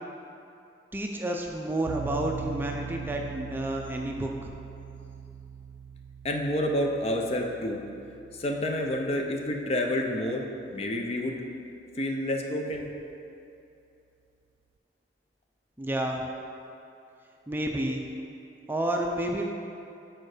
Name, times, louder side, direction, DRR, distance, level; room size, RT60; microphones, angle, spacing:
voice 1, 0.9-4.5 15.8-16.3 17.5-18.0 18.7-19.5, right 1 dB, 10° right, 1 dB, 0.4 m, -30 dB
sound 1, 1.9-10.7, right 6 dB, 75° right, 0.3 m, -42 dB
voice 2, 6.2-7.8 8.3-11.4 12.0-12.9, left 1 dB, 35° left, 2 dB, 0.6 m, -29 dB
6.6 x 4.5 x 4.9 m, 2.7 s
head